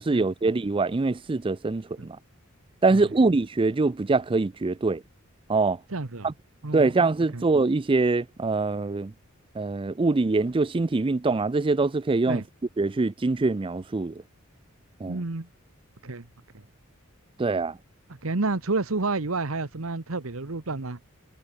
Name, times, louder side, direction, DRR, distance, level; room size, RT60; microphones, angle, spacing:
voice 1, 0.0-2.2 2.8-5.0 5.5-5.8 6.2-6.3 6.7-9.1 9.6-12.4 12.8-14.2 15.0-15.2 17.4-17.8, right 3 dB, 25° right, 0.4 m, -24 dB
voice 2, 5.9-6.3 6.6-6.9 7.3-7.4 12.3-12.4 15.1-15.5 16.0-16.2 16.5-16.6 18.2-21.0, right 3 dB, 70° right, 1.3 m, -30 dB
head